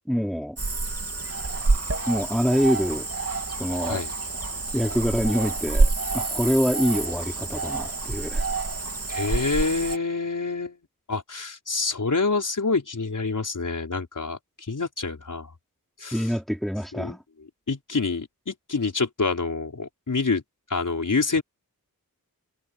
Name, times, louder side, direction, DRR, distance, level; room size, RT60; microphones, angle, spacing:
voice 1, 0.1-0.6 2.1-3.1 3.6-4.0 4.7-8.4 16.1-17.2, equal, ahead, 4.8 m, -25 dB
Cricket / Frog, 0.6-10.0, right 3 dB, 40° right, 3.2 m, -27 dB
voice 2, 3.8-4.1 9.1-10.8 11.1-14.4 14.7-15.5 16.0-16.3 16.9-17.1 17.7-20.4 20.7-21.4, left 4 dB, 55° left, 5.2 m, -27 dB
wide cardioid pair, 85°, 36 cm